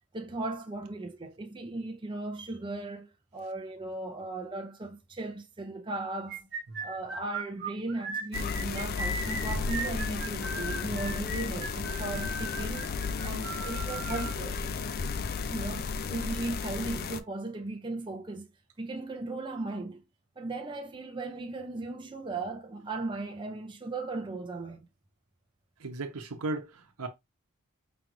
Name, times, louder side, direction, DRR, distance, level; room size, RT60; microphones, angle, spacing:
voice 1, 0.1-6.5 6.8-12.9 13.2-14.6 15.5-18.5 18.8-20.0 20.4-24.9, right 2 dB, 20° right, 0.5 m, -37 dB
sound 1, 6.3-14.3, right 2 dB, 55° right, 1.4 m, -37 dB
sound 2, 8.3-17.2, left 5 dB, 45° left, 0.3 m, -34 dB
voice 2, 25.8-27.1, right 2 dB, 85° right, 0.8 m, -36 dB
5.0 x 2.4 x 3.0 m
head